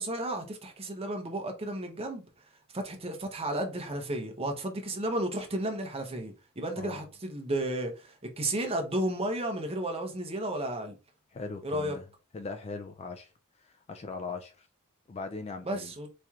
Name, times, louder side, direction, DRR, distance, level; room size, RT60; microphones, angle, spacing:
voice 1, 0.0-2.2 2.7-11.0 11.6-12.0 15.7-16.1, right 1 dB, 25° right, 0.8 m, -33 dB
voice 2, 11.3-12.0 12.3-13.3 13.6-14.7 15.1-15.9, left 4 dB, 30° left, 0.3 m, -40 dB
4.2 x 3.1 x 2.4 m
head